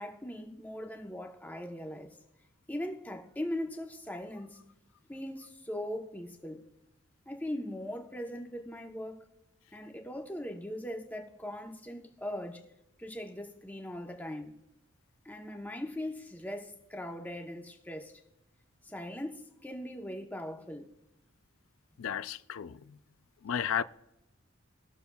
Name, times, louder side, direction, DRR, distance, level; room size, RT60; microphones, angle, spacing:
voice 1, 0.0-2.2 2.7-4.6 5.1-6.6 7.3-9.2 9.7-12.6 13.0-14.6 15.2-18.2 18.8-20.9, left 1 dB, 10° left, 0.9 m, -40 dB
voice 2, 22.0-23.0 23.4-23.8, left 8 dB, 75° left, 0.4 m, -33 dB
20.5 x 6.8 x 2.3 m
head